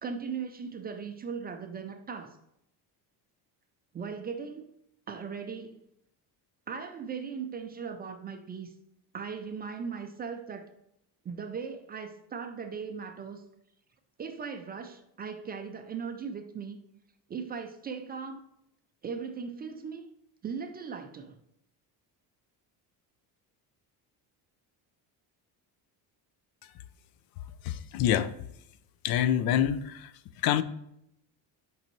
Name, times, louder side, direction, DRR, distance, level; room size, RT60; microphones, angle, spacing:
voice 1, 0.0-2.4 3.9-4.7 5.1-5.8 6.7-8.7 9.1-10.7 11.2-13.4 14.2-16.8 17.3-18.4 19.0-20.0 20.4-21.4, right 6 dB, 25° right, 0.3 m, -38 dB
voice 2, 27.6-28.3 29.0-30.1 30.4-30.6, left 10 dB, 60° left, 0.5 m, -26 dB
6.4 x 5.4 x 3.1 m
cardioid pair, 160°, 40 cm